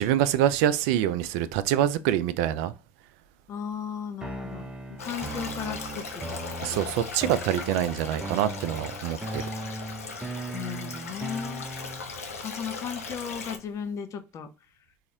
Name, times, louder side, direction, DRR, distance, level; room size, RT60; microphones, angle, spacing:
voice 1, 0.0-2.7 6.6-9.4, right 11 dB, 65° right, 0.3 m, -25 dB
voice 2, 3.5-6.0 6.7-6.8 10.5-11.7 12.4-14.5, left 7 dB, 40° left, 0.6 m, -35 dB
sound 1, 4.2-12.2, right 2 dB, 10° right, 0.5 m, -38 dB
Stream, 5.0-13.6, left 4 dB, 90° left, 0.5 m, -38 dB
4.0 x 2.4 x 2.8 m
hypercardioid pair, 65°, 8 cm